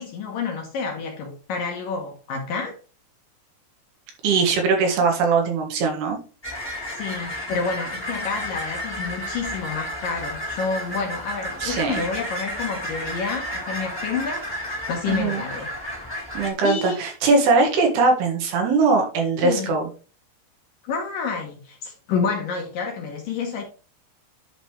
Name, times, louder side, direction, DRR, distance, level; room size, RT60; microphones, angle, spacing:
voice 1, 0.0-2.8 6.9-15.7 16.6-17.0 19.4-19.7 20.8-23.6, left 5 dB, 65° left, 2.3 m, -29 dB
voice 2, 4.2-6.2 11.6-12.1 15.1-15.4 16.4-19.9, right 4 dB, 70° right, 3.5 m, -21 dB
sound 1, 6.4-16.5, equal, 10° left, 2.0 m, -32 dB
11.0 x 5.3 x 3.1 m
omnidirectional pair, 5.0 m